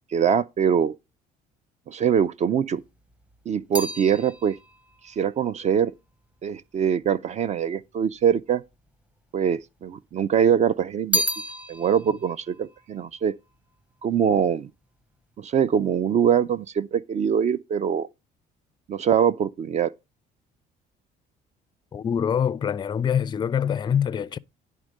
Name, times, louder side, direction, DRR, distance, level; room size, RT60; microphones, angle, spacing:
voice 1, 0.1-1.0 1.9-2.8 3.5-4.6 5.0-5.9 6.4-8.6 9.3-11.2 11.7-13.3 14.0-14.7 15.4-18.1 18.9-19.9, right 8 dB, 40° right, 0.4 m, -23 dB
sound 1, 2.8-7.2 8.0-8.8 9.1-10.2 10.5-14.1 14.3-14.9, equal, 5° right, 0.8 m, -33 dB
voice 2, 21.9-24.4, left 8 dB, 25° left, 0.4 m, -24 dB
10.5 x 3.6 x 6.3 m
cardioid pair, 110°, 17 cm